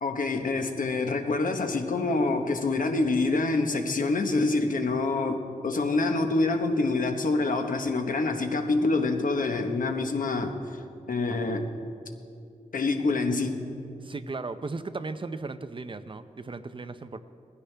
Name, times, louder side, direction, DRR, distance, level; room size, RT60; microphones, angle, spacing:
voice 1, 0.0-10.8 11.1-11.7 12.7-13.7, left 3 dB, 75° left, 5 dB, 1.1 m, -26 dB
voice 2, 14.0-17.2, right 3 dB, 40° right, 11 dB, 0.6 m, -36 dB
19.5 x 15.5 x 3.4 m, 2.5 s
wide cardioid pair, 115°, 14 cm